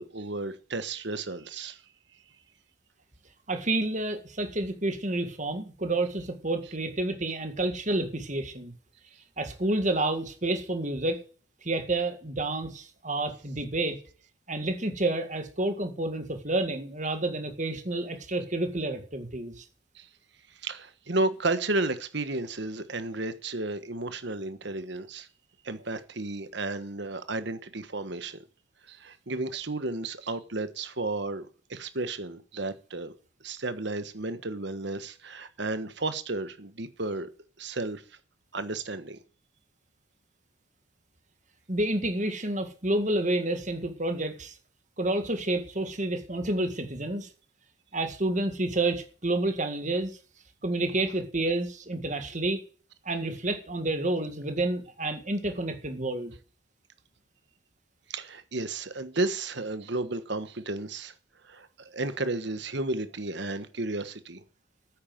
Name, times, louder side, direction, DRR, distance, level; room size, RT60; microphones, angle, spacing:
voice 1, 0.0-1.8 19.9-20.1 20.6-25.3 25.6-28.4 28.9-33.1 33.4-37.3 37.6-38.0 38.5-39.2 58.1-61.1 61.4-64.4, right 2 dB, 55° right, 1.3 m, -33 dB
voice 2, 3.5-8.7 9.4-11.2 11.6-14.0 14.5-19.6 41.7-44.5 45.0-47.3 47.9-50.1 50.6-52.6 53.1-56.3, right 2 dB, 35° right, 1.9 m, -29 dB
9.6 x 9.0 x 7.7 m
head